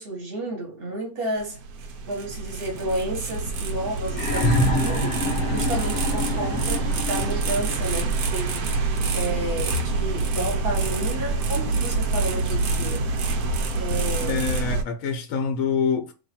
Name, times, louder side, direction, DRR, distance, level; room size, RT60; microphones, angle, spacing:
voice 1, 0.0-1.6 2.1-8.7 9.1-13.0 13.7-14.4, right 1 dB, 45° right, 1.3 m, -31 dB
sound 1, 1.4-14.8, right 3 dB, 90° right, 1.1 m, -26 dB
sound 2, 4.1-7.9 9.1-9.2, left 1 dB, 45° left, 0.8 m, -26 dB
voice 2, 14.2-16.1, left 6 dB, 70° left, 1.0 m, -26 dB
2.8 x 2.5 x 4.1 m
omnidirectional pair, 1.5 m